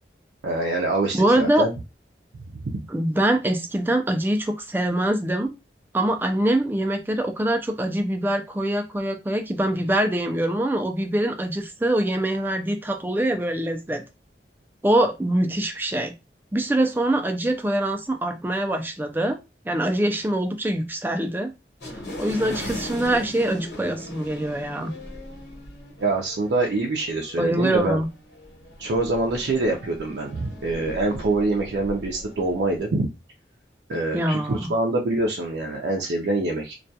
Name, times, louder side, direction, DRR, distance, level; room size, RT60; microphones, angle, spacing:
voice 1, 0.4-1.7 2.5-2.8 26.0-28.0 28.8-33.1 33.9-36.7, right 2 dB, 75° right, 0 dB, 0.4 m, -25 dB
voice 2, 1.1-1.7 2.9-5.5 5.9-14.0 14.8-16.1 16.5-19.4 19.7-21.5 22.2-24.9 27.4-28.1 34.1-34.7, right 1 dB, 10° right, 6 dB, 0.3 m, -24 dB
sound 1, 21.8-32.8, left 1 dB, 75° left, 1.1 m, -39 dB
2.3 x 2.2 x 2.6 m, 0.25 s
head